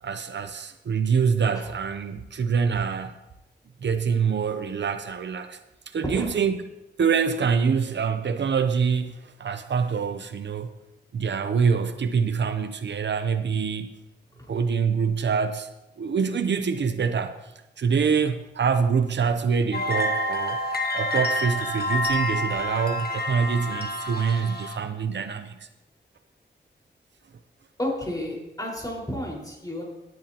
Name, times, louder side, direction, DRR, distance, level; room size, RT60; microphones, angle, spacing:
voice 1, 0.0-3.2 3.8-5.6 5.9-6.6 7.0-10.7 11.1-13.9 14.5-15.7 16.0-17.5 17.8-20.6 20.9-25.7, right 6 dB, 75° right, 9 dB, 0.7 m, -25 dB
sound 1, 19.7-24.8, left 1 dB, 60° left, 1.4 m, -28 dB
voice 2, 27.8-29.8, left 1 dB, 20° left, -2 dB, 4.7 m, -31 dB
17.0 x 10.5 x 2.9 m, 0.93 s
wide cardioid pair, 75°, 19 cm